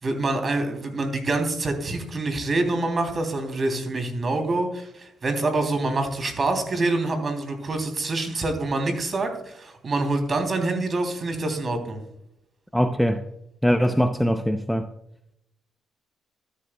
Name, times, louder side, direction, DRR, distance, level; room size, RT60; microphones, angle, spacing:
voice 1, 0.0-12.0, right 2 dB, 40° right, 3.1 m, -26 dB
voice 2, 12.7-13.2 13.6-14.9, equal, ahead, 0.7 m, -21 dB
13.0 x 11.5 x 2.3 m
cardioid pair, 90°, 0 cm